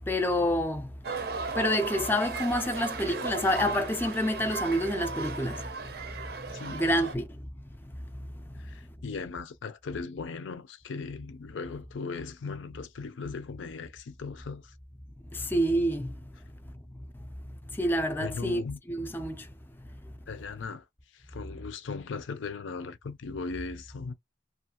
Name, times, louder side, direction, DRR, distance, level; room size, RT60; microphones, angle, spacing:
voice 1, 0.1-0.9 1.6-5.6 6.7-7.2 15.3-16.1 17.8-18.6 18.9-19.5, equal, 10° left, 0.3 m, -27 dB
sound 1, 1.0-7.2, right 4 dB, 55° right, 0.5 m, -36 dB
voice 2, 6.5-7.1 8.6-14.7 18.2-18.8 20.3-20.8 21.1-24.1, left 4 dB, 85° left, 0.5 m, -38 dB
2.4 x 2.3 x 2.8 m
head